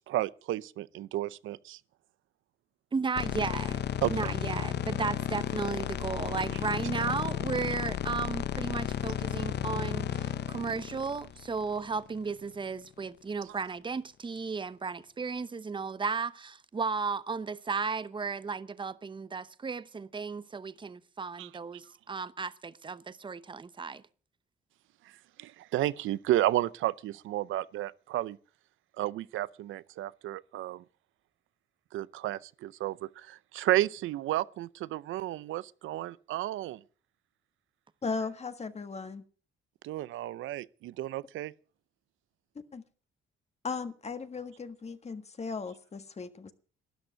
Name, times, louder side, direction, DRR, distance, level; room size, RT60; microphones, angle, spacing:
voice 1, 0.1-1.8 4.0-4.3 21.4-21.5 25.4-28.4 29.0-30.8 31.9-36.8 39.8-41.5, right 14 dB, 80° right, 0.6 m, -32 dB
voice 2, 2.9-3.8 4.1-24.0, right 5 dB, 25° right, 0.8 m, -34 dB
sound 1, 3.2-12.3, left 10 dB, 60° left, 0.7 m, -33 dB
voice 3, 38.0-39.2 42.7-42.8 43.6-46.5, left 4 dB, 35° left, 1.6 m, -37 dB
13.0 x 10.5 x 7.7 m
cardioid pair, 90°, 20 cm